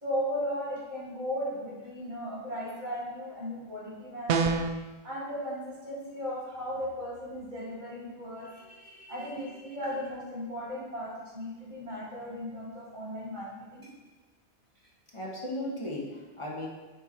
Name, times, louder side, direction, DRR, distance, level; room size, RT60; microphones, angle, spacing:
voice 1, 0.0-4.6 5.0-8.5 9.1-13.9, equal, 45° right, -8 dB, 2.7 m, -36 dB
sound 1, 4.3-4.8, right 4 dB, 65° right, 0.7 m, -25 dB
voice 2, 8.4-9.9 15.1-16.7, left 1 dB, 25° left, -2 dB, 1.4 m, -39 dB
8.8 x 4.6 x 4.4 m, 1.2 s
omnidirectional pair, 1.1 m